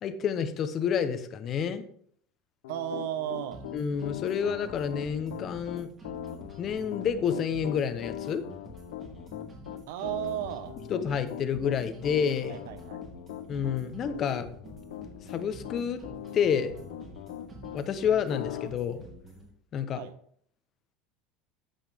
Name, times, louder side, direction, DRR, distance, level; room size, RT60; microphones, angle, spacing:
voice 1, 0.0-1.8 3.7-5.9 6.6-8.4 10.9-12.6 13.5-14.5 15.3-16.0 16.3-16.7 17.7-19.0 19.7-20.0, left 7 dB, 40° left, 10 dB, 0.9 m, -29 dB
Piano, 2.6-17.8 18.3-18.7, left 12 dB, 85° left, 0.9 m, -40 dB
voice 2, 2.7-3.7 9.9-10.8 12.5-13.0 20.0-20.1, right 12 dB, 75° right, 12 dB, 0.9 m, -34 dB
sound 1, 3.5-19.5, right 1 dB, 30° right, 3.1 m, -47 dB
14.0 x 5.6 x 3.6 m, 0.62 s
supercardioid pair, 125°, 0 cm